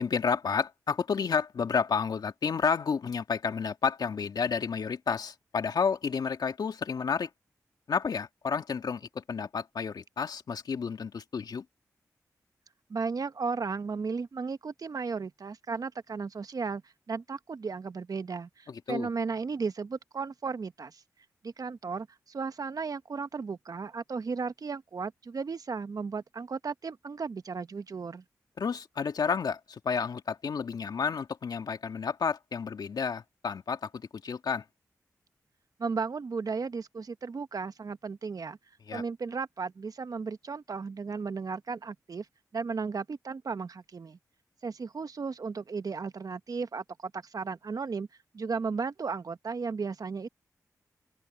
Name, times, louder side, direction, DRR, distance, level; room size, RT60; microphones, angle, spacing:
voice 1, 0.0-7.3 7.9-11.6 18.7-19.1 28.6-34.6 38.9-39.0, left 6 dB, 70° left, 2.1 m, -31 dB
voice 2, 12.9-16.8 17.1-21.0 21.4-28.2 35.8-38.6 38.9-42.3 42.5-44.2 44.6-48.1 48.3-50.3, right 5 dB, 60° right, 1.3 m, -35 dB
supercardioid pair, 40°, 7 cm